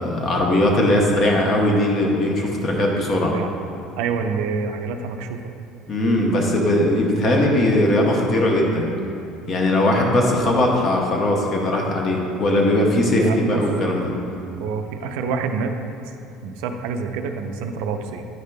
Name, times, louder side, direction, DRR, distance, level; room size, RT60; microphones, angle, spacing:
voice 1, 0.0-3.3 5.9-8.9 9.5-14.1, left 1 dB, 30° left, 0 dB, 0.8 m, -19 dB
voice 2, 3.1-3.5 4.0-5.4 13.1-13.6 14.6-15.7 16.4-18.3, right 5 dB, 90° right, 6 dB, 0.4 m, -27 dB
9.5 x 5.1 x 2.2 m, 2.6 s
cardioid pair, 170°, 0 cm